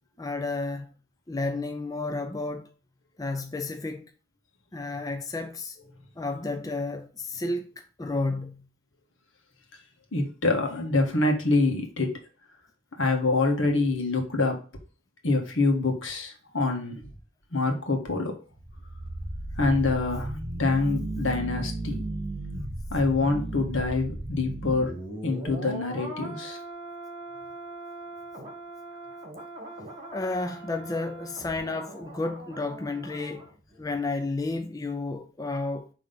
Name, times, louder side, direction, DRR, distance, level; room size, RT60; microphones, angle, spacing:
voice 1, 0.2-0.9 1.3-2.7 3.2-4.1 4.7-5.8 6.2-8.6 30.1-33.5 33.8-35.9, left 3 dB, 20° left, 0.4 m, -31 dB
voice 2, 10.1-12.1 13.0-14.6 15.2-17.1 17.5-18.4 19.6-22.0 22.9-24.9 25.2-26.6, left 3 dB, 80° left, 1.6 m, -26 dB
sound 1, 18.5-33.5 33.8-33.9, right 1 dB, 25° right, 1.9 m, -37 dB
5.7 x 3.4 x 5.2 m
head